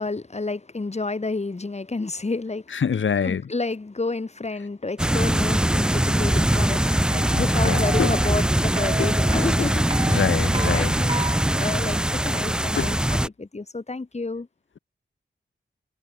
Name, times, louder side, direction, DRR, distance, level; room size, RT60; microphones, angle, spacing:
voice 1, 0.0-2.8 3.2-11.2 11.5-14.5, left 3 dB, 35° left, 2.2 m, -30 dB
voice 2, 2.7-3.4 6.9-7.0 7.3-8.1 9.0-9.7 10.1-10.9 12.7-13.0, left 6 dB, 75° left, 1.2 m, -26 dB
sound 1, 5.0-13.3, right 1 dB, 5° right, 0.5 m, -22 dB
sound 2, 7.1-12.7, right 2 dB, 25° right, 1.2 m, -34 dB
wide cardioid pair, 80°, 20 cm